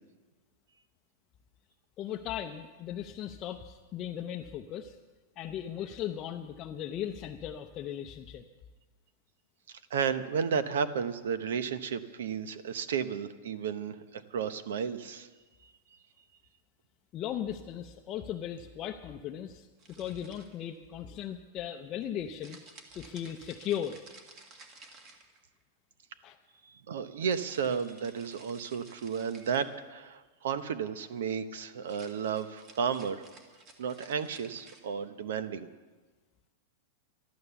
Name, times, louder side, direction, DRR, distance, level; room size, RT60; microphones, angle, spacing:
voice 1, 2.0-5.0 5.4-8.4 17.1-22.6 22.9-24.0 26.2-26.4, left 10 dB, 30° left, 3 dB, 0.6 m, -37 dB
voice 2, 9.7-15.3 26.9-33.2 33.8-35.7, right 6 dB, 85° right, 13 dB, 0.9 m, -33 dB
sound 1, 19.8-20.8 22.4-25.6 27.3-29.8 31.8-34.8, right 3 dB, 35° right, 1.8 m, -54 dB
13.0 x 12.0 x 6.9 m, 1.3 s
supercardioid pair, 150°, 0 cm